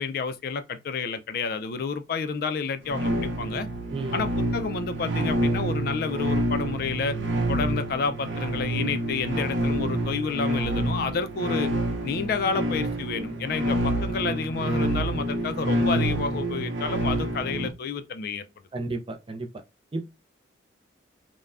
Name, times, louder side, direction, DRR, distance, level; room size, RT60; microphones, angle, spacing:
voice 1, 0.0-3.7 4.1-7.2 7.5-11.7 12.0-18.4, left 5 dB, 55° left, 0.3 m, -30 dB
sound 1, 2.9-17.7, right 1 dB, 80° right, 0.6 m, -27 dB
voice 2, 3.9-4.2 18.7-19.5 19.9-20.1, right 3 dB, 30° right, 0.4 m, -32 dB
3.3 x 2.1 x 2.4 m
head